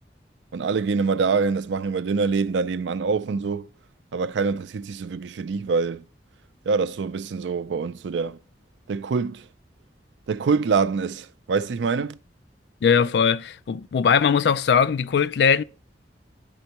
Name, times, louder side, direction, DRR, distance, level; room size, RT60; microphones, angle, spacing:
voice 1, 0.5-3.7 4.1-6.0 6.7-8.4 8.9-9.5 10.3-12.2, right 4 dB, 90° right, 0.4 m, -25 dB
voice 2, 12.8-15.6, left 6 dB, 65° left, 0.3 m, -20 dB
10.5 x 4.4 x 2.9 m
head